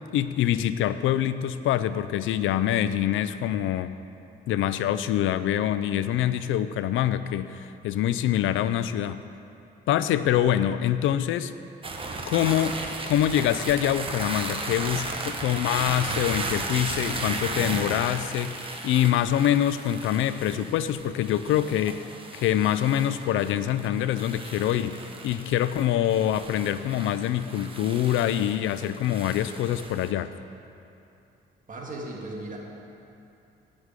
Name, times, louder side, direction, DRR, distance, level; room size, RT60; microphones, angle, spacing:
voice 1, 0.1-3.9 4.5-9.2 9.9-11.5 12.3-12.8 13.0-22.1 22.3-30.3, left 11 dB, 80° left, 13 dB, 0.4 m, -25 dB
sound 1, 11.8-30.1, right 3 dB, 25° right, 1.1 m, -35 dB
voice 2, 31.7-32.6, right 2 dB, 40° right, -2 dB, 1.7 m, -36 dB
8.9 x 6.4 x 8.1 m, 2.7 s
cardioid pair, 90°, 20 cm